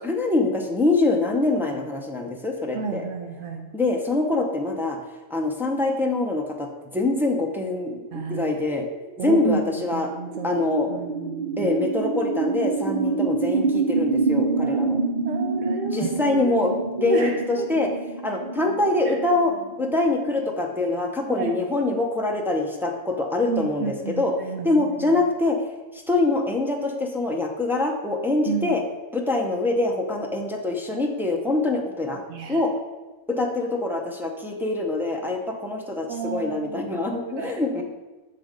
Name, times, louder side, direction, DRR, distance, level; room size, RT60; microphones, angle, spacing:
voice 1, 0.0-3.0 3.7-5.0 5.3-8.9 9.2-10.1 10.4-10.9 11.6-15.0 15.9-16.7 17.0-17.9 18.2-24.3 24.6-25.6 25.9-28.8 29.1-32.2 32.5-32.7 33.3-37.8, left 2 dB, 5° right, 0 dB, 0.3 m, -24 dB
voice 2, 2.7-3.7 8.1-8.6 9.2-9.6 9.9-10.5 10.9-11.6 14.4-14.8 15.3-16.4 17.0-17.7 19.0-19.1 21.2-21.6 23.5-25.2 28.5-28.8 32.3-32.6 36.1-37.8, right 5 dB, 80° right, 3 dB, 1.0 m, -31 dB
sound 1, 8.5-20.6, right 4 dB, 55° right, 0.6 m, -27 dB
7.5 x 3.8 x 5.1 m, 1.2 s
omnidirectional pair, 1.3 m